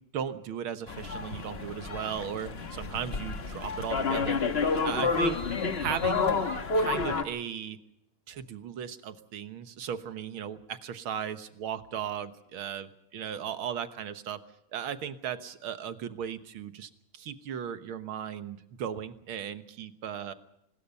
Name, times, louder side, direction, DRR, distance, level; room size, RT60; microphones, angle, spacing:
voice 1, 0.0-4.4 4.8-5.4 5.8-6.3 6.7-7.8 8.3-12.9 13.1-14.4 14.7-20.3, right 8 dB, 85° right, 10 dB, 2.1 m, -36 dB
sound 1, 0.9-7.2, left 4 dB, 35° left, 1.4 m, -29 dB
24.5 x 20.5 x 5.5 m, 0.79 s
omnidirectional pair, 2.2 m